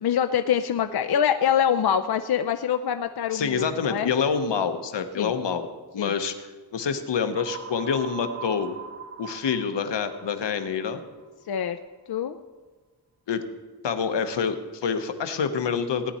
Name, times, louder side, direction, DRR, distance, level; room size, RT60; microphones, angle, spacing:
voice 1, 0.0-4.1 5.2-5.3 6.0-6.1 11.5-11.8 12.1-12.4, left 9 dB, 65° left, 7 dB, 0.6 m, -24 dB
voice 2, 3.3-5.7 5.9-6.5 6.7-8.8 9.2-11.0 13.3-13.5 13.8-16.1, left 6 dB, 85° left, 8 dB, 1.1 m, -27 dB
sound 1, 7.4-11.2, right 6 dB, 30° right, 1.0 m, -41 dB
17.0 x 10.0 x 4.3 m, 1.3 s
wide cardioid pair, 115°, 42 cm